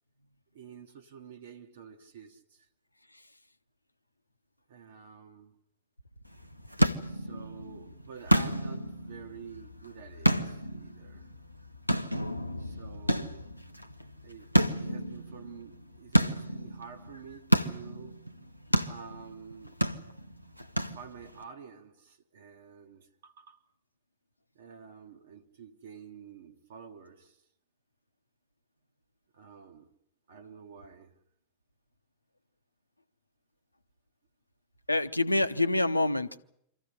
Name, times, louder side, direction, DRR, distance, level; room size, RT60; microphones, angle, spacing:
voice 1, 0.5-2.7 4.7-5.6 6.9-11.3 12.6-13.6 14.2-18.3 18.8-19.8 20.9-23.6 24.5-27.4 29.3-29.9 30.3-31.2, right 6 dB, 60° right, 1.3 m, -49 dB
sound 1, 6.3-21.4, equal, 90° right, 0.8 m, -31 dB
voice 2, 34.9-36.4, left 2 dB, 85° left, 0.8 m, -27 dB
24.5 x 14.5 x 10.0 m
figure-of-eight pair, 90°, 0 cm